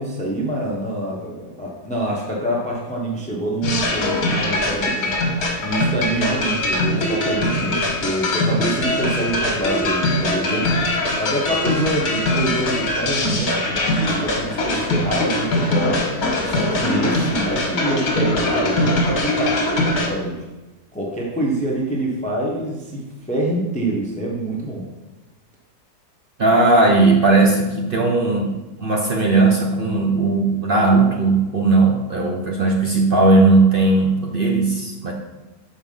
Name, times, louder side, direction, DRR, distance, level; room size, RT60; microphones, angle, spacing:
voice 1, 0.0-5.1 5.6-10.7 11.2-20.3 20.9-23.0 23.3-24.8, right 1 dB, 5° left, -2 dB, 0.9 m, -26 dB
sound 1, 3.6-20.1, left 1 dB, 65° left, 1.7 m, -22 dB
voice 2, 26.4-35.1, right 3 dB, 45° right, 0 dB, 0.7 m, -17 dB
6.4 x 4.6 x 5.3 m, 1.1 s
omnidirectional pair, 1.7 m